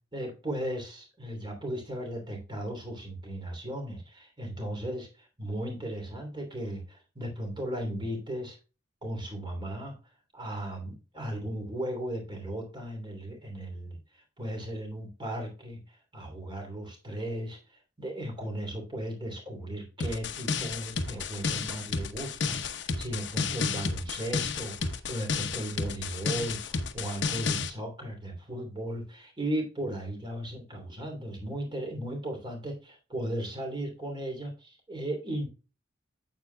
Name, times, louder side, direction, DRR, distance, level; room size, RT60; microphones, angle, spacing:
voice 1, 0.1-5.1 5.4-8.6 9.0-9.9 10.3-14.0 14.4-17.6 18.0-35.5, right 1 dB, 25° right, 2 dB, 2.9 m, -36 dB
sound 1, 20.0-27.7, left 5 dB, 65° left, 0.9 m, -32 dB
8.9 x 7.8 x 2.2 m, 0.33 s
head